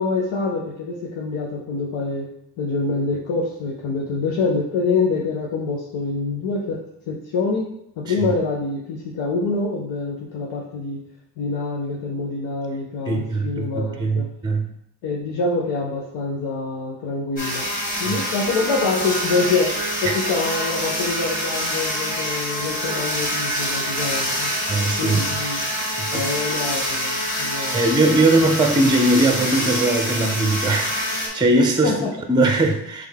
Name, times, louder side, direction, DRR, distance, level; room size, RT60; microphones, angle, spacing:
voice 1, 0.0-2.3 2.6-6.8 7.1-7.7 8.0-11.0 11.4-14.3 15.0-17.7 18.0-24.5 25.0-25.6 26.1-27.9 31.8-32.1, left 3 dB, 90° left, -2 dB, 0.7 m, -25 dB
voice 2, 13.1-14.7 18.0-18.1 20.0-20.1 24.7-25.5 26.0-26.3 27.7-31.9 32.3-33.1, right 2 dB, 10° right, 4 dB, 0.5 m, -20 dB
sound 1, 17.4-31.3, equal, 20° left, 1.6 m, -26 dB
3.7 x 3.3 x 3.5 m, 0.74 s
cardioid pair, 80°, 44 cm